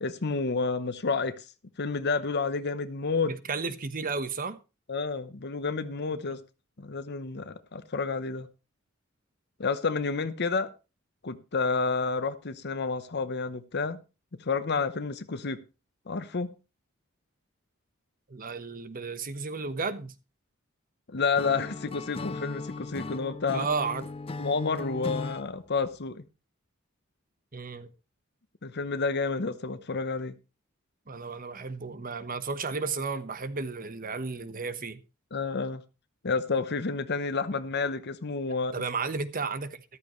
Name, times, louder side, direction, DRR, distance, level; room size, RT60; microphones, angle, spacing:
voice 1, 0.0-1.3 1.8-3.3 4.9-6.4 6.8-8.5 9.6-10.7 11.2-14.0 14.4-15.6 16.1-16.5 21.1-23.7 24.4-26.2 28.6-30.3 35.3-35.8 36.2-38.8, left 4 dB, 55° left, 0.8 m, -30 dB
voice 2, 3.3-4.6 18.3-20.1 23.5-24.0 27.5-27.9 31.1-35.0 38.7-39.8, right 4 dB, 45° right, 1.1 m, -33 dB
Acoustic guitar / Strum, 21.4-25.5, left 3 dB, 25° left, 0.5 m, -37 dB
14.0 x 12.5 x 3.1 m
head